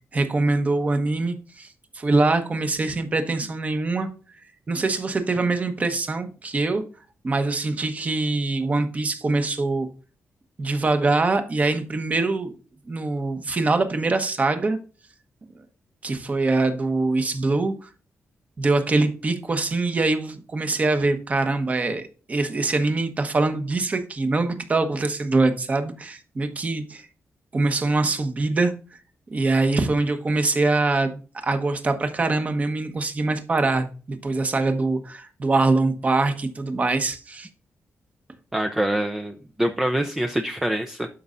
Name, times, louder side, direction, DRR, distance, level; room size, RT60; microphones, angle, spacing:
voice 1, 0.1-1.7 1.9-4.1 4.7-6.8 7.2-9.9 10.6-12.6 12.9-14.8 16.0-17.9 18.6-27.1 27.5-28.7 29.3-37.5, right 3 dB, 30° right, 1.1 m, -23 dB
voice 2, 38.5-41.1, right 1 dB, 10° right, 0.5 m, -25 dB
12.5 x 5.5 x 2.5 m
wide cardioid pair, 170°, 5 cm